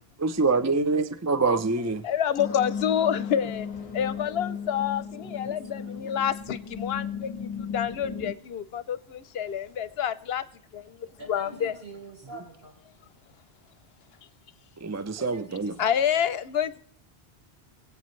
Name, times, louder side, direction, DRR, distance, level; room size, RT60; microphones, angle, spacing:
voice 1, 0.2-2.0 14.8-15.7, right 3 dB, 25° right, 0.4 m, -25 dB
voice 2, 2.0-3.7 3.9-10.4 10.7-11.0 11.3-11.7 15.8-16.8, left 9 dB, 75° left, 0.9 m, -28 dB
sound 1, 2.4-8.3, left 6 dB, 35° left, 1.0 m, -35 dB
voice 3, 11.2-12.7 15.2-16.2, right 3 dB, 65° right, 4.9 m, -44 dB
23.5 x 8.4 x 3.1 m
omnidirectional pair, 1.1 m